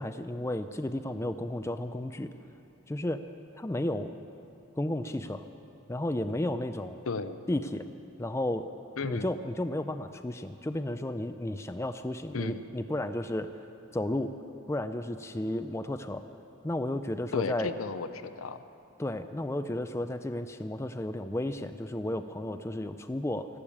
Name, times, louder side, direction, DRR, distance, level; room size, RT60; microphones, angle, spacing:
voice 1, 0.0-2.3 2.9-3.2 3.5-4.1 4.8-5.5 5.9-7.0 7.5-7.9 8.2-8.7 9.0-13.5 13.9-14.3 14.7-16.2 16.6-17.7 19.0-23.5, left 1 dB, 15° left, 9 dB, 0.4 m, -33 dB
voice 2, 7.1-7.4 9.0-9.3 12.3-12.6 17.3-18.6, left 4 dB, 80° left, 11 dB, 0.7 m, -34 dB
14.0 x 12.0 x 8.6 m, 2.7 s
head